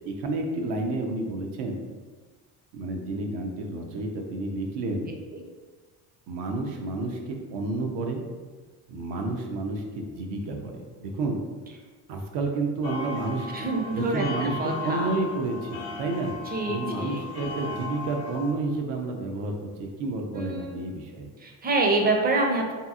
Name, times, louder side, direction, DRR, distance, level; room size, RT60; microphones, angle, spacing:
voice 1, 0.0-1.8 2.7-5.1 6.3-8.2 8.9-11.4 12.1-13.6 13.9-16.4 16.7-21.3, right 2 dB, 80° right, 2 dB, 0.6 m, -30 dB
sound 1, 12.8-18.5, left 3 dB, 85° left, 0.8 m, -36 dB
voice 2, 13.5-15.1 16.5-17.2 20.3-20.8 21.4-22.7, right 2 dB, 25° right, 1 dB, 0.5 m, -26 dB
2.8 x 2.6 x 2.4 m, 1.4 s
supercardioid pair, 80°, 40 cm